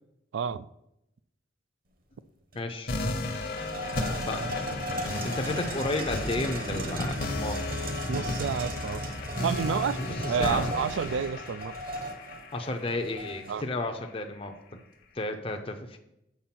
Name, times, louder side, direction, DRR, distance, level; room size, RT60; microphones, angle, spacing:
voice 1, 0.3-0.7 8.1-9.1 9.4-10.0 10.3-11.7 13.5-13.6, right 7 dB, 80° right, 0.3 m, -30 dB
voice 2, 2.5-2.9 3.3-3.8 4.2-4.5 5.0-7.7 10.0-10.7 12.5-14.8 15.1-16.0, left 2 dB, 30° left, 0.6 m, -33 dB
sound 1, 2.5-2.6 3.0-13.7, equal, 50° right, 1.0 m, -36 dB
sound 2, 2.9-13.9, left 2 dB, 50° left, 0.9 m, -35 dB
7.1 x 4.7 x 5.9 m
head